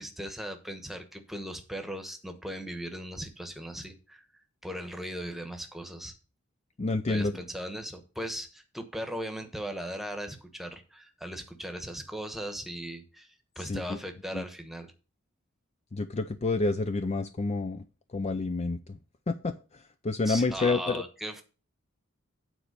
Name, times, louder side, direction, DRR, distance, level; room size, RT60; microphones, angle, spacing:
voice 1, 0.0-4.2 4.6-6.1 7.1-14.9 20.2-21.4, equal, ahead, 6 dB, 1.1 m, -38 dB
voice 2, 6.8-7.4 13.6-14.0 14.3-14.4 15.9-17.8 18.1-19.0 19.3-19.5 20.0-21.0, left 3 dB, 30° left, 9 dB, 0.4 m, -29 dB
9.1 x 4.5 x 6.6 m, 0.34 s
head